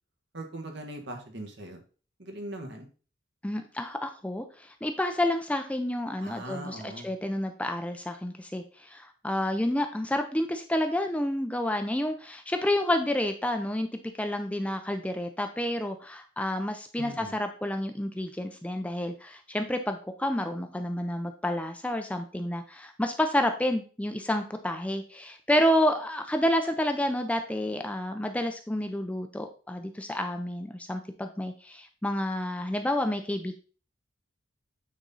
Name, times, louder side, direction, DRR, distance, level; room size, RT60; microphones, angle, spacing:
voice 1, 0.3-1.8 2.2-2.9 6.2-7.1 17.0-17.3, right 1 dB, 60° right, 4 dB, 1.6 m, -40 dB
voice 2, 3.4-13.9 14.2-33.5, left 1 dB, 5° left, 6 dB, 0.5 m, -29 dB
9.2 x 4.3 x 3.9 m, 0.38 s
head